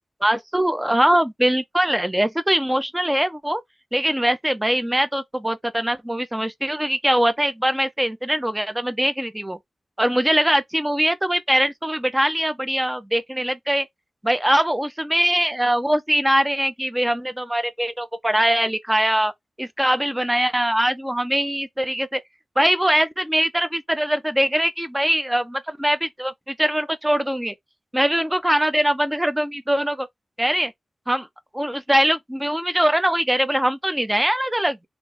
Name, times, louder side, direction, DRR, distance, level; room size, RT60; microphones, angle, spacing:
voice 1, 0.2-3.6 3.9-9.6 10.0-13.9 14.2-19.3 19.6-22.2 22.6-27.5 27.9-30.1 30.4-30.7 31.1-31.3 31.5-34.8, right 1 dB, 10° right, 0.6 m, -22 dB
3.3 x 2.6 x 3.3 m
wide cardioid pair, 110°, 0 cm